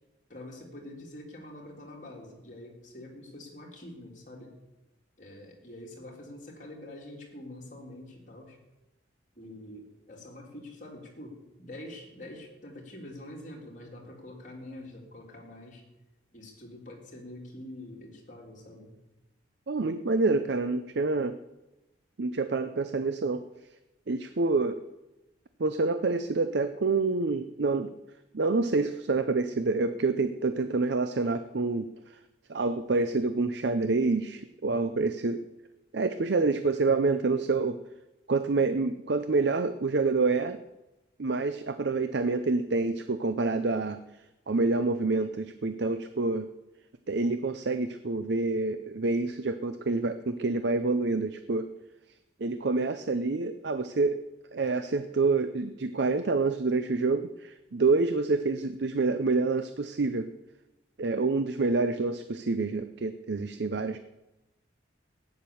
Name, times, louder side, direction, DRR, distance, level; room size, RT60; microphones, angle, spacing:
voice 1, 0.3-4.5 5.2-8.6 9.3-15.8 16.3-19.0, left 1 dB, 40° left, -2 dB, 3.3 m, -45 dB
voice 2, 19.7-21.4 22.2-23.4 24.1-24.8 25.6-27.9 28.3-31.9 32.5-35.4 35.9-37.8 38.3-40.6 41.2-44.0 44.5-46.5 47.1-51.7 52.4-54.2 54.5-60.3 61.0-64.0, right 3 dB, 60° right, 10 dB, 0.6 m, -27 dB
15.0 x 9.5 x 7.0 m, 0.99 s
head